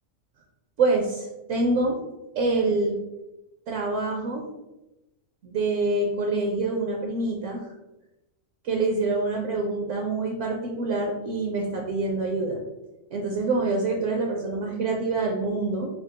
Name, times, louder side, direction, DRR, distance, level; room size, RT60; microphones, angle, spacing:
voice 1, 0.8-2.0 2.4-3.0 3.7-4.4 5.4-7.6 8.6-12.6 13.1-15.9, right 3 dB, 70° right, 0 dB, 0.9 m, -26 dB
3.6 x 2.3 x 3.8 m, 0.96 s
omnidirectional pair, 1.4 m